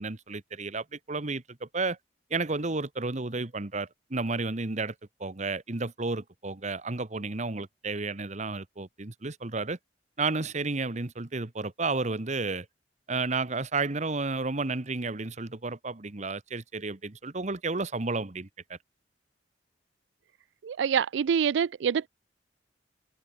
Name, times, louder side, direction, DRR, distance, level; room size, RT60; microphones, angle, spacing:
voice 1, 0.0-2.0 2.3-4.9 5.2-9.8 10.2-12.7 13.1-18.8, right 3 dB, 40° right, 1.2 m, -32 dB
voice 2, 20.6-22.1, right 7 dB, 80° right, 0.4 m, -26 dB
open air
head